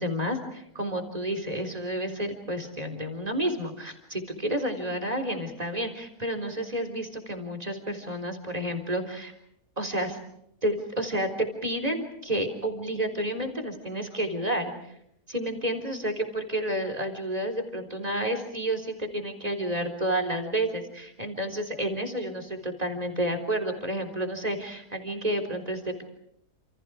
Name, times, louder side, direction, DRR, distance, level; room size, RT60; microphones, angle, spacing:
voice 1, 0.0-9.3 9.8-10.2 10.6-14.7 15.3-26.0, right 1 dB, 25° right, 5 dB, 3.8 m, -30 dB
29.0 x 28.5 x 4.9 m, 0.75 s
omnidirectional pair, 1.6 m